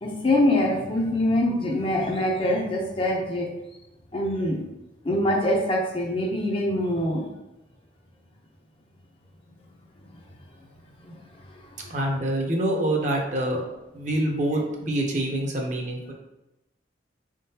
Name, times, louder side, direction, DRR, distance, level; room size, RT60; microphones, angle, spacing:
voice 1, 0.0-3.5 4.1-4.6 5.0-7.3 11.0-11.2 11.5-11.6 11.9-12.0, left 1 dB, 30° left, 0 dB, 0.5 m, -24 dB
voice 2, 11.9-13.6 13.9-16.1, right 1 dB, 40° right, 1 dB, 0.7 m, -26 dB
4.7 x 3.6 x 2.8 m, 0.95 s
head